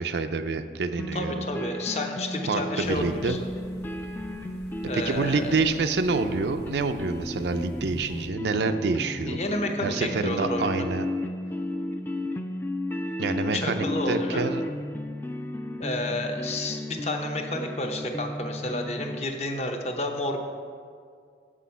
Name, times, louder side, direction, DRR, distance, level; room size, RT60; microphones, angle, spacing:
voice 1, 0.0-1.4 2.5-3.4 4.9-9.4 9.8-11.1 13.2-14.6, right 4 dB, 75° right, 8 dB, 0.4 m, -27 dB
sound 1, 1.0-19.2, left 1 dB, 10° left, 0.3 m, -34 dB
voice 2, 1.1-3.5 4.9-5.5 9.3-10.8 13.5-14.5 15.8-20.4, left 1 dB, 35° left, 4 dB, 0.8 m, -30 dB
sound 2, 2.8-8.3, equal, 75° left, 1.2 m, -47 dB
7.6 x 6.2 x 5.5 m, 2.2 s
head